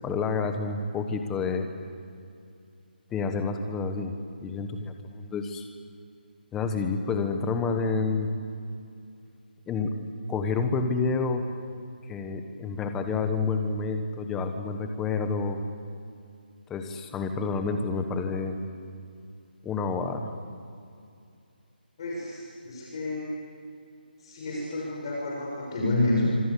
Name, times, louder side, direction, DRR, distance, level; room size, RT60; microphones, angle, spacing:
voice 1, 0.0-1.7 3.1-4.1 4.4-5.7 6.5-8.3 9.7-9.9 10.3-11.4 12.1-15.6 16.7-18.6 19.6-20.3, left 4 dB, 5° left, 6 dB, 1.2 m, -29 dB
voice 2, 22.0-23.3 24.2-26.4, left 2 dB, 30° left, -3 dB, 6.2 m, -29 dB
27.0 x 25.5 x 8.5 m, 2.5 s
hypercardioid pair, 170°, 5 cm